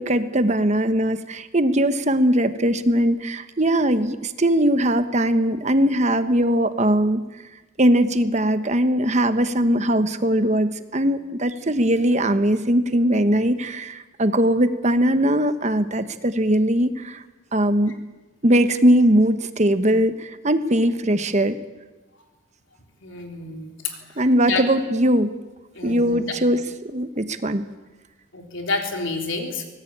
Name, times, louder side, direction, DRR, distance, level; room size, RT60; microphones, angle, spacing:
voice 1, 0.0-7.2 7.8-17.2 17.5-17.9 18.4-21.6 24.2-25.3 25.8-27.7, right 1 dB, 35° right, 11 dB, 1.2 m, -20 dB
voice 2, 23.0-24.0 24.4-24.6 25.8-26.2 28.3-29.6, left 3 dB, 65° left, 3 dB, 3.7 m, -28 dB
24.0 x 19.0 x 8.8 m, 1.2 s
head